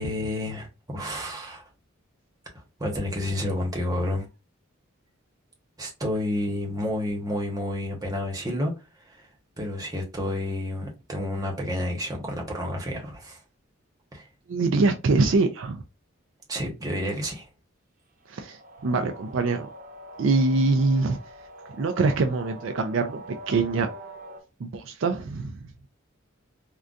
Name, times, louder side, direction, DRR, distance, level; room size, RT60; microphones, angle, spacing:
voice 1, 0.0-1.7 2.8-4.3 5.8-9.3 9.6-13.4 14.1-14.3 16.5-17.5, left 1 dB, 20° right, 1.0 m, -30 dB
voice 2, 14.5-15.8 18.3-19.7 20.2-21.3 21.8-23.9 24.6-25.6, right 3 dB, 65° right, 0.4 m, -24 dB
sound 1, 18.2-24.4, right 1 dB, 45° right, 0.8 m, -44 dB
3.8 x 2.3 x 2.4 m
head